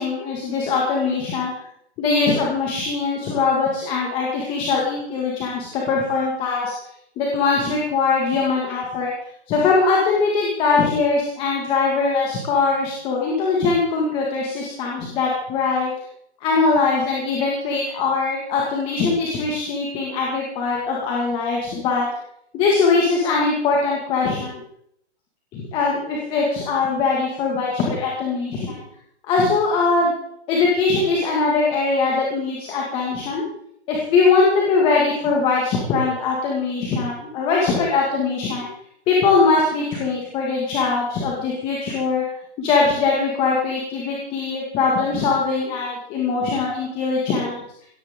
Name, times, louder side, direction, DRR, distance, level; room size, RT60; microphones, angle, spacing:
voice 1, 0.0-1.5 2.0-6.7 7.2-9.1 9.5-15.9 16.4-22.1 22.5-24.6 25.5-28.8 29.3-30.1 30.5-33.4 33.9-38.7 39.1-42.2 42.6-47.6, left 4 dB, 15° left, -2 dB, 1.9 m, -21 dB
18.0 x 14.5 x 3.7 m, 0.72 s
hypercardioid pair, 165°, 33 cm